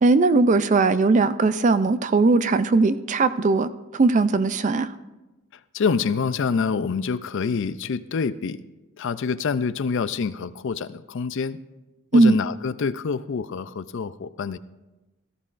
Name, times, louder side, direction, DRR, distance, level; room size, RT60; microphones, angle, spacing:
voice 1, 0.0-4.9 12.1-12.4, right 3 dB, 35° right, 13 dB, 0.4 m, -19 dB
voice 2, 5.7-8.6 9.0-11.6 12.1-14.6, left 5 dB, 55° left, 15 dB, 0.4 m, -26 dB
17.5 x 14.0 x 2.5 m, 1.1 s
head